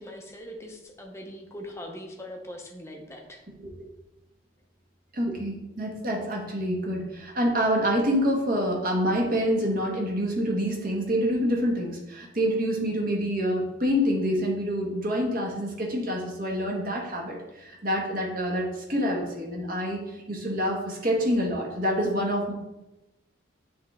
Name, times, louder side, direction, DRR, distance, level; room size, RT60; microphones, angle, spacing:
voice 1, 0.0-3.5, equal, 15° left, 1 dB, 0.8 m, -41 dB
voice 2, 5.1-22.5, equal, 45° right, -1 dB, 1.3 m, -27 dB
8.7 x 3.4 x 3.5 m, 0.97 s
head